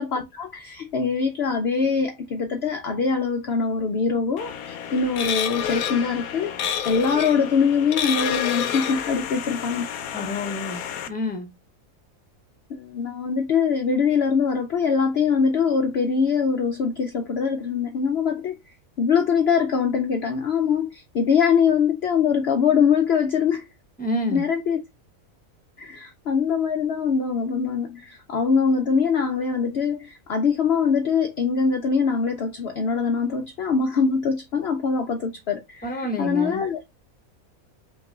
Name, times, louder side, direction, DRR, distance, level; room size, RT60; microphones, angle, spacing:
voice 1, 0.0-9.9 12.7-18.6 19.0-23.7 24.3-24.8 25.8-36.8, left 6 dB, 60° left, 0.7 m, -23 dB
sound 1, 4.4-11.1, left 8 dB, 90° left, 1.1 m, -29 dB
voice 2, 10.1-11.5 24.0-24.4 35.8-36.6, left 1 dB, 5° left, 1.0 m, -28 dB
5.4 x 3.0 x 2.3 m
omnidirectional pair, 1.5 m